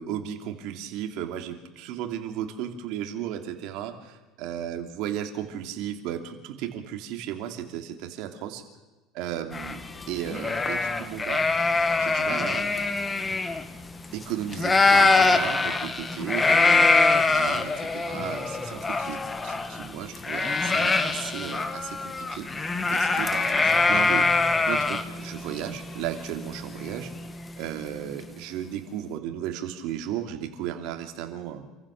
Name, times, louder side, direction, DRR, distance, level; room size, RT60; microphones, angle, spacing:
voice 1, 0.0-8.6 9.1-9.8 10.1-11.5 12.0-12.9 14.1-24.3 24.6-27.1 27.6-31.6, right 10 dB, 65° right, 5 dB, 3.0 m, -35 dB
sound 1, 9.5-14.3 14.5-27.4, left 3 dB, 20° left, 1.5 m, -24 dB
28.0 x 15.0 x 6.7 m, 1.2 s
supercardioid pair, 120°, 0 cm